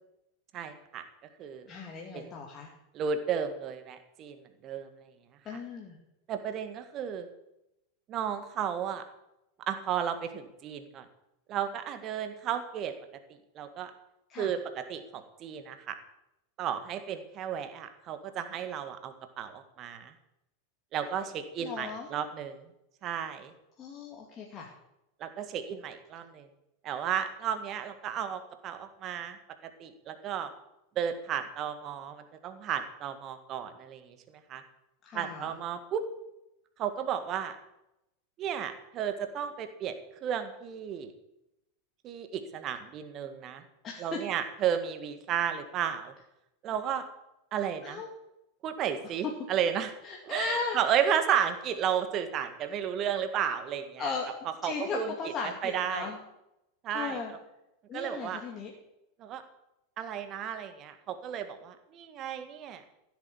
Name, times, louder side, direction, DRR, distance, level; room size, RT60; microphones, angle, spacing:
voice 1, 0.5-1.0 1.4-1.7 2.1-2.3 2.9-4.3 4.6-5.1 6.3-7.3 8.1-9.0 9.7-11.0 11.5-12.9 13.5-13.9 14.4-16.0 16.6-20.1 20.9-22.6 23.0-23.5 25.2-26.5 26.8-29.4 29.8-30.5 30.9-34.2 34.5-34.6 35.1-36.0 36.8-37.6 38.4-39.9 40.2-41.1 42.0-43.6 44.0-46.1 46.6-47.0 47.5-48.0 48.6-49.9 50.2-54.1 54.6-55.1 55.6-56.1 56.8-57.2 57.9-58.4 59.2-59.4 60.0-62.8, right 8 dB, 35° right, 9 dB, 1.8 m, -33 dB
voice 2, 1.7-2.7 5.4-6.0 14.3-14.5 21.0-21.3 21.6-22.1 23.8-24.7 35.0-35.5 43.8-44.2 47.8-48.1 50.0-50.8 54.0-54.3 54.6-56.2 56.9-57.3 57.9-58.7, left 5 dB, 30° left, -1 dB, 2.5 m, -37 dB
15.5 x 8.3 x 7.1 m, 0.87 s
figure-of-eight pair, 85°, 0 cm